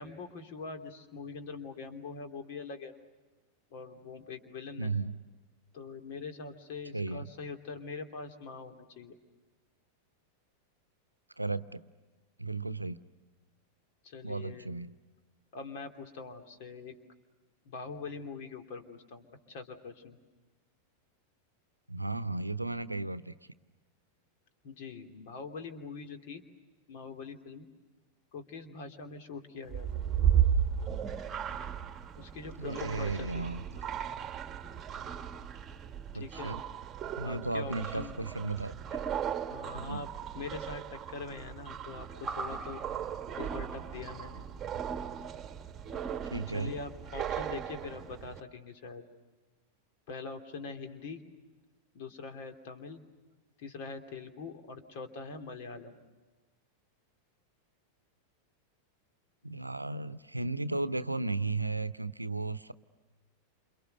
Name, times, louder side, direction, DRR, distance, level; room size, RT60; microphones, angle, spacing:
voice 1, 0.0-2.9 3.7-5.0 5.7-9.2 14.0-14.7 15.5-16.9 17.6-20.2 24.6-26.4 26.9-27.7 28.3-29.9 32.2-33.5 36.1-36.6 37.2-38.2 39.5-40.1 40.3-42.8 43.4-44.4 46.5-49.1 50.1-51.2 51.9-53.0 53.6-56.0, left 4 dB, 50° left, 6 dB, 3.0 m, -43 dB
voice 2, 4.8-5.2 6.9-7.3 11.4-11.8 12.4-13.0 14.2-14.9 21.9-23.3 32.6-33.6 36.1-36.6 37.2-38.7 39.7-40.0 46.3-46.7 59.4-62.7, right 3 dB, 85° right, 14 dB, 0.8 m, -34 dB
sound 1, 29.7-48.4, right 9 dB, 25° right, 1.4 m, -35 dB
29.0 x 28.0 x 6.7 m, 1.3 s
figure-of-eight pair, 90°, 0 cm